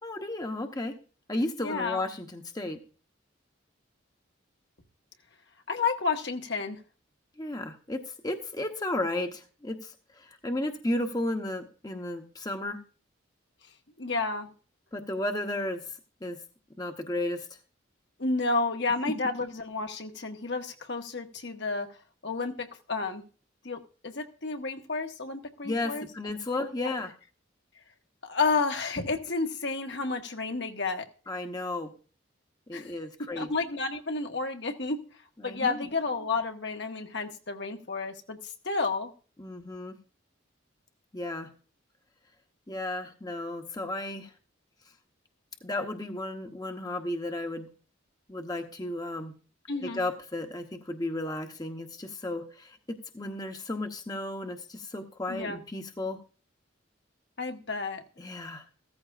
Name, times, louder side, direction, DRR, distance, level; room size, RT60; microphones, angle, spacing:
voice 1, 0.0-1.0 1.3-2.8 7.4-12.8 14.9-15.9 16.2-16.4 16.8-17.5 25.6-27.1 31.3-31.9 32.7-33.5 35.4-35.9 39.4-40.0 41.1-41.5 42.7-44.3 45.6-47.7 48.3-49.3 49.8-56.2 58.2-58.7, left 1 dB, 20° left, 5 dB, 0.9 m, -34 dB
voice 2, 1.6-2.0 5.7-6.8 14.0-14.5 18.2-21.9 22.2-23.2 23.6-26.1 28.2-31.1 32.7-32.9 33.2-35.0 35.4-39.1 49.7-50.0 55.3-55.6 57.4-58.0, left 4 dB, 60° left, 4 dB, 1.4 m, -31 dB
15.5 x 14.0 x 2.5 m, 0.37 s
head